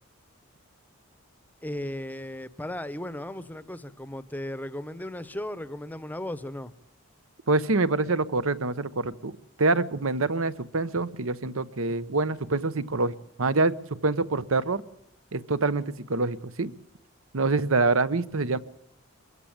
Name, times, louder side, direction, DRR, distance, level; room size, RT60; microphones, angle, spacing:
voice 1, 1.6-6.7, left 1 dB, 10° left, 0.8 m, -36 dB
voice 2, 7.5-9.3 9.6-14.8 15.3-16.7 17.3-18.6, right 3 dB, 70° right, 1.0 m, -26 dB
24.0 x 15.5 x 8.8 m
head